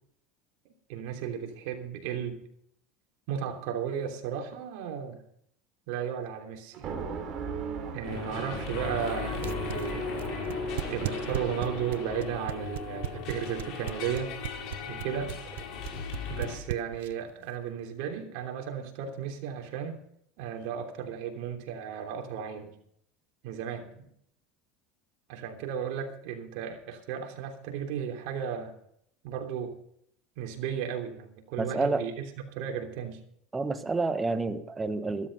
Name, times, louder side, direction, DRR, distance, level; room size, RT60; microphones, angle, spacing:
voice 1, 0.9-2.3 3.3-5.2 5.9-7.0 7.9-10.1 10.9-14.3 14.9-15.4 16.3-20.0 20.4-22.7 23.4-24.1 25.3-28.7 29.2-29.8 30.4-33.2, right 8 dB, 65° right, 3 dB, 3.1 m, -34 dB
sound 1, 6.7-12.4, right 5 dB, 40° right, 3.4 m, -39 dB
sound 2, 8.0-16.6, left 5 dB, 55° left, 5.5 m, -37 dB
sound 3, 9.4-17.3, right 14 dB, 85° right, 0.7 m, -35 dB
voice 2, 31.6-32.0 33.5-35.3, right 3 dB, 15° right, 9 dB, 1.3 m, -29 dB
13.5 x 13.0 x 5.4 m, 0.69 s
supercardioid pair, 125°, 0 cm